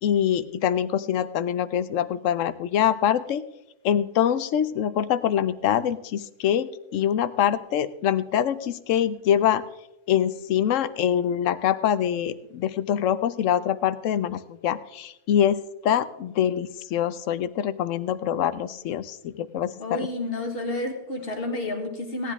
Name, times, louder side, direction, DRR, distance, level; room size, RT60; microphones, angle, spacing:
voice 1, 0.0-3.4 3.8-9.6 10.1-20.1, left 10 dB, 90° left, 14 dB, 1.0 m, -24 dB
voice 2, 19.8-22.3, left 2 dB, 50° left, 3 dB, 1.8 m, -30 dB
17.0 x 10.0 x 3.6 m, 0.90 s
omnidirectional pair, 1.3 m